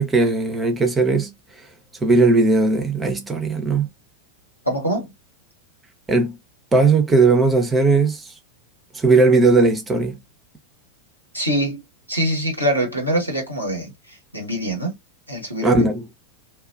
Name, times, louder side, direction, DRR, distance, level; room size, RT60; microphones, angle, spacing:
voice 1, 0.0-1.3 2.0-3.9 6.1-6.4 6.7-8.3 8.9-10.2 15.6-16.0, right 3 dB, 15° right, 0.7 m, -17 dB
voice 2, 4.6-5.1 11.3-11.8 12.1-14.9 15.3-15.9, right 1 dB, 90° left, 1.2 m, -24 dB
2.3 x 2.2 x 2.4 m
figure-of-eight pair, 90°, 0 cm